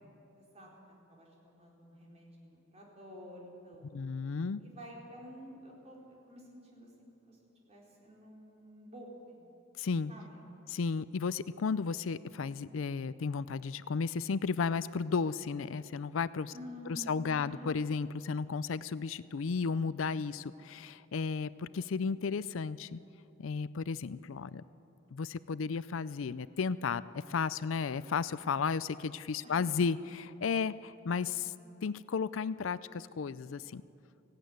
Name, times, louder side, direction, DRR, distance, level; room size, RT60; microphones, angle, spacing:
voice 1, 0.3-4.1 4.6-9.4 10.1-10.5 16.5-17.7 29.4-29.6 30.6-30.9, equal, 30° right, -3 dB, 4.2 m, -51 dB
voice 2, 3.9-4.6 9.8-10.1 10.7-16.5 16.9-23.0 23.4-24.6 25.1-31.5 31.8-33.8, left 5 dB, 75° left, 17 dB, 0.5 m, -34 dB
18.0 x 16.0 x 9.4 m, 2.7 s
head